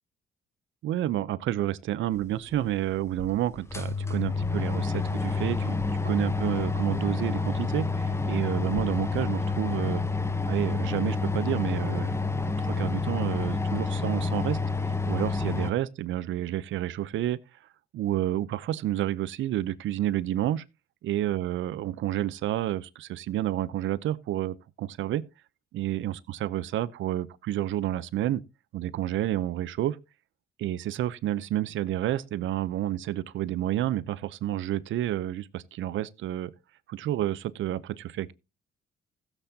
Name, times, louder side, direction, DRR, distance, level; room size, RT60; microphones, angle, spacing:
voice 1, 0.8-5.8 6.0-10.0 10.5-12.2 12.6-14.6 14.9-17.4 17.9-20.6 21.0-25.2 25.7-28.4 28.7-30.0 30.6-36.5 36.9-38.3, right 13 dB, 75° right, 0.7 m, -30 dB
sound 1, 2.5-2.6 3.2-3.3 3.6-15.7, left 3 dB, 15° left, 1.0 m, -28 dB
15.5 x 8.1 x 2.8 m
cardioid pair, 90°, 20 cm